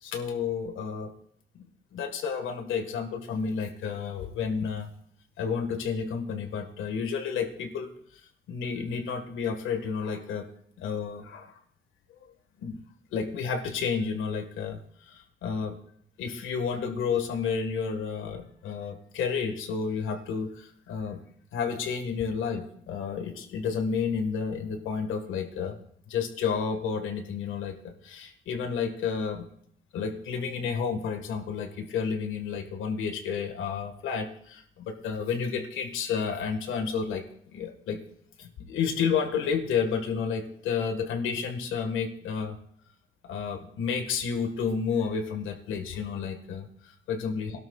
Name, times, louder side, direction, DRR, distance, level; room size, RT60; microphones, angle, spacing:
voice 1, 0.0-1.1 1.9-4.9 5.4-7.9 8.5-10.5 10.8-11.6 12.6-12.8 13.1-15.8 16.2-21.2 21.5-25.8 26.1-27.7 28.0-29.4 29.9-37.2 37.5-38.0 38.4-42.6 43.2-47.5, left 6 dB, 80° left, 6 dB, 1.6 m, -31 dB
21.5 x 12.0 x 2.4 m, 0.65 s
cardioid pair, 90°, 20 cm